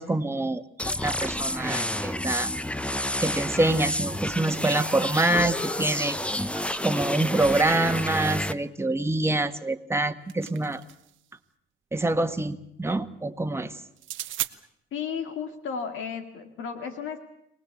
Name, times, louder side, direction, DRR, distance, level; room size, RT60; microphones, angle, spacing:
voice 1, 0.0-2.5 3.2-6.2 6.5-10.8 11.9-13.8, right 2 dB, 10° right, 7 dB, 1.5 m, -26 dB
sound 1, 0.8-8.5, left 1 dB, 5° left, 0.9 m, -29 dB
sound 2, 9.9-11.2 14.0-14.5, right 14 dB, 80° right, 1.0 m, -35 dB
voice 2, 14.9-17.2, left 6 dB, 80° left, 7 dB, 2.1 m, -33 dB
24.0 x 18.5 x 8.4 m, 0.77 s
cardioid pair, 90°, 20 cm